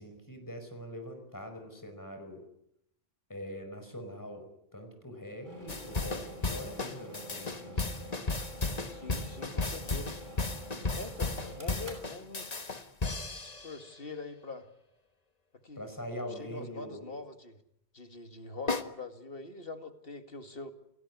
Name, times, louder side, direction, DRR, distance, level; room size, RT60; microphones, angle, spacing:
voice 1, 0.0-2.4 3.3-4.5 4.7-8.1 15.7-17.1, equal, 15° left, 5 dB, 5.1 m, -43 dB
sound 1, 5.4-13.1, equal, 45° right, 6.3 m, -48 dB
sound 2, 5.7-13.9 18.7-18.8, left 3 dB, 40° left, 1.6 m, -34 dB
voice 2, 8.9-10.1 10.9-12.7 13.6-14.7 15.6-15.9 16.4-17.6 17.9-20.7, left 3 dB, 60° left, 8 dB, 2.4 m, -43 dB
29.5 x 17.5 x 9.7 m, 0.79 s
omnidirectional pair, 1.1 m